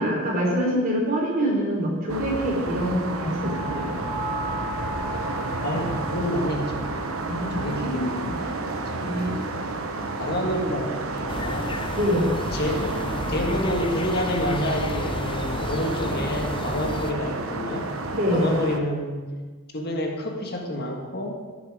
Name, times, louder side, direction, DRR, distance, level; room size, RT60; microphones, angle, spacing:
voice 1, 0.0-3.9 7.2-8.4 9.0-9.8 11.9-12.3 18.1-18.5, equal, 40° right, -3 dB, 3.9 m, -25 dB
sound 1, 2.1-18.8, right 3 dB, 80° right, 1.1 m, -31 dB
sound 2, 3.4-7.5 7.7-8.0, equal, 5° right, 2.6 m, -36 dB
voice 2, 5.6-6.9 7.6-8.6 8.9-9.4 10.2-11.8 12.5-13.0 13.3-17.9 18.3-19.3 19.7-21.4, equal, 50° left, 1 dB, 1.7 m, -28 dB
sound 3, 11.3-17.1, left 2 dB, 25° left, 0.6 m, -32 dB
13.5 x 11.0 x 4.9 m, 1.4 s
head